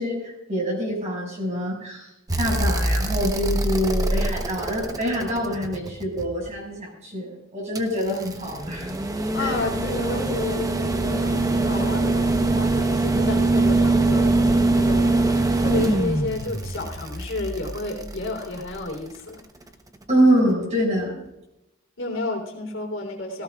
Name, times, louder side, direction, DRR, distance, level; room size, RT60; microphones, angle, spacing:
voice 1, 0.0-2.1 2.4-8.9 9.4-9.6 20.1-21.2, equal, 35° right, -2 dB, 6.2 m, -25 dB
sound 1, 2.3-6.5 7.8-18.9 20.5-20.6, right 2 dB, 15° right, 1.0 m, -23 dB
voice 2, 9.3-19.4 22.0-23.4, left 2 dB, 65° left, 2 dB, 3.7 m, -31 dB
18.5 x 17.0 x 2.4 m, 0.88 s
head